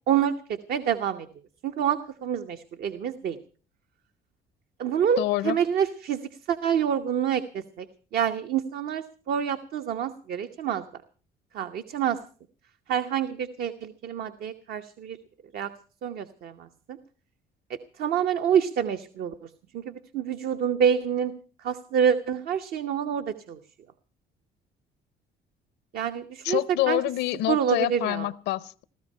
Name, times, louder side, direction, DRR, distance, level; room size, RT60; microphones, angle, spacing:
voice 1, 0.1-1.3 1.6-3.4 4.8-5.2 5.4-7.9 8.1-10.8 11.5-12.2 12.9-15.2 15.5-15.7 16.0-17.0 18.0-21.3 21.6-23.6 25.9-26.6 26.9-27.0 27.5-28.3, right 8 dB, 65° right, 0.9 m, -27 dB
voice 2, 5.2-5.6 26.4-28.8, left 16 dB, 90° left, 0.7 m, -27 dB
16.5 x 14.0 x 5.5 m
cardioid pair, 110°, 17 cm